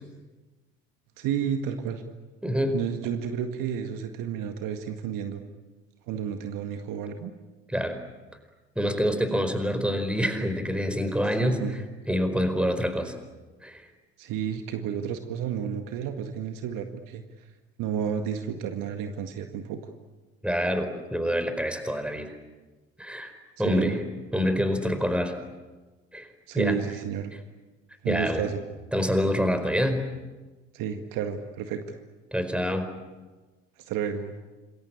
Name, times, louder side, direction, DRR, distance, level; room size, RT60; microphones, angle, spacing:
voice 1, 1.2-2.0 2.7-5.4 6.1-7.3 11.4-11.8 14.2-17.5 17.8-19.8 23.6-24.0 26.5-27.3 28.0-28.6 30.7-32.0 33.8-34.3, right 8 dB, 60° right, 7 dB, 2.0 m, -31 dB
voice 2, 2.4-2.8 7.7-8.0 8.7-11.6 12.1-13.1 13.6-13.8 20.4-22.3 23.0-23.3 23.6-24.0 24.3-25.4 26.1-26.3 26.5-26.8 28.1-28.4 28.9-30.1 32.3-32.9, equal, 5° right, 9 dB, 4.7 m, -26 dB
27.5 x 22.0 x 8.7 m, 1.2 s
figure-of-eight pair, 60°, 38 cm